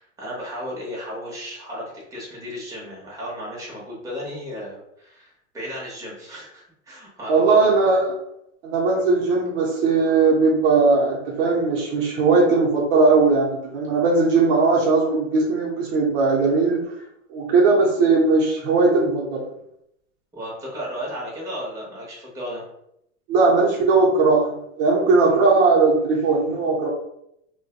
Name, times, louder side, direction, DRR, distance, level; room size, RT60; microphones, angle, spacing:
voice 1, 0.0-7.7 20.3-22.6, equal, 10° right, -5 dB, 0.9 m, -34 dB
voice 2, 7.3-8.1 8.6-16.9 17.3-19.4 23.3-26.9, right 3 dB, 50° right, -2 dB, 0.8 m, -18 dB
2.5 x 2.2 x 2.4 m, 0.78 s
hypercardioid pair, 110°, 37 cm